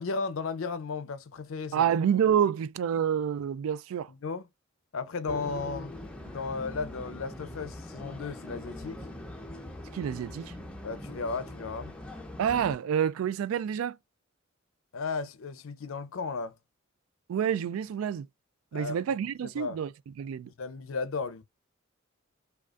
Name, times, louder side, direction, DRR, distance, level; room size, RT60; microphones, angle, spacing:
voice 1, 0.0-1.9 4.1-4.4 4.9-6.0 6.2-9.0 10.8-11.9 14.9-16.6 18.7-19.0 19.6-19.8 20.5-21.4, left 4 dB, 75° left, 0.5 m, -35 dB
voice 2, 1.7-4.1 9.9-10.5 12.4-14.0 17.3-18.3 18.7-19.9 20.2-20.5, right 8 dB, 85° right, 0.3 m, -28 dB
sound 1, 5.3-12.8, left 1 dB, 5° left, 0.5 m, -42 dB
4.9 x 2.3 x 2.4 m
head